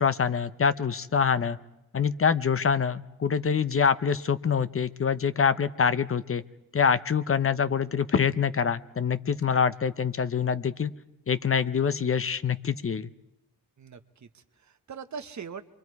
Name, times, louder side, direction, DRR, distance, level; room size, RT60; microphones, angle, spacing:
voice 1, 0.0-1.6 1.9-6.4 6.7-10.9 11.3-13.1, left 6 dB, 45° left, 13 dB, 0.7 m, -25 dB
voice 2, 13.8-15.7, right 6 dB, 60° right, 8 dB, 1.1 m, -42 dB
28.0 x 24.0 x 4.7 m, 0.90 s
cardioid pair, 85°, 32 cm